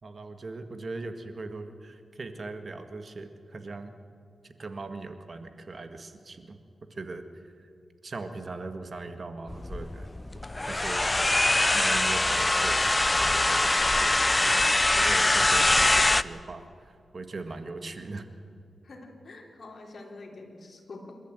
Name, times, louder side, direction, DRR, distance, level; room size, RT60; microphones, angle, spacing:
voice 1, 0.0-3.9 4.4-6.6 6.9-7.5 8.0-10.1 10.7-14.6 15.0-18.3, right 3 dB, 50° right, 8 dB, 1.8 m, -40 dB
sound 1, 9.5-16.2, left 2 dB, 25° left, 0.6 m, -23 dB
voice 2, 15.5-16.0 17.5-17.6 18.8-21.1, left 2 dB, 60° left, 1 dB, 4.0 m, -46 dB
28.0 x 13.0 x 9.1 m, 2.4 s
cardioid pair, 75°, 0 cm